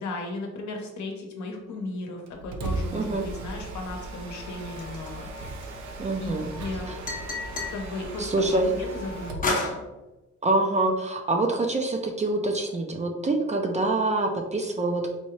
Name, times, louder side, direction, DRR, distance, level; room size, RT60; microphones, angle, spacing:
voice 1, 0.0-5.3 6.2-6.3 6.6-6.9 7.7-8.2 8.5-9.8, left 2 dB, 65° left, 2 dB, 0.9 m, -35 dB
Mechanisms, 2.3-9.5, right 2 dB, 65° right, 0.6 m, -37 dB
voice 2, 2.9-3.2 6.0-6.5 8.2-8.7 10.4-15.1, right 2 dB, 25° right, 3 dB, 0.5 m, -25 dB
sound 1, 4.8-6.0 7.1-7.8 9.4-9.8, left 3 dB, 25° left, 0.8 m, -29 dB
4.1 x 2.3 x 3.1 m, 1.1 s
cardioid pair, 90°, 31 cm